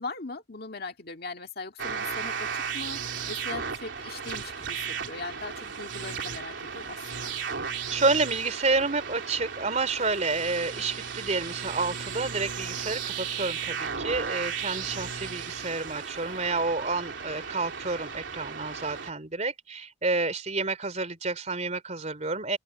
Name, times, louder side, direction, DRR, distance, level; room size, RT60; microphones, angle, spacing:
voice 1, 0.0-3.0 3.3-7.3, left 3 dB, 55° left, 2.0 m, -40 dB
sound 1, 1.8-19.1, right 6 dB, 75° right, 3.3 m, -35 dB
voice 2, 7.9-22.6, right 3 dB, 40° right, 3.4 m, -29 dB
open air
head